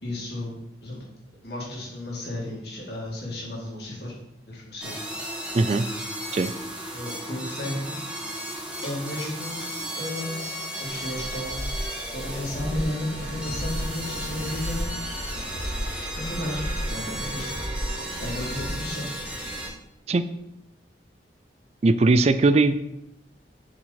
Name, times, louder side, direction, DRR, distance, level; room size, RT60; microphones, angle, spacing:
voice 1, 0.0-0.5 0.8-1.0 1.4-4.1 4.5-5.0 6.9-8.0 8.8-9.6 10.0-11.8 12.1-14.8 16.1-17.5 18.2-19.1, left 1 dB, 65° left, -4 dB, 2.2 m, -33 dB
sound 1, 4.8-19.7, right 1 dB, 5° right, 1.4 m, -35 dB
voice 2, 5.5-5.8 6.3-6.5 20.1-20.2 21.8-22.7, right 3 dB, 35° right, 11 dB, 0.4 m, -19 dB
sound 2, 10.9-18.7, equal, 80° right, 1.9 m, -34 dB
7.3 x 4.8 x 4.1 m, 0.85 s
head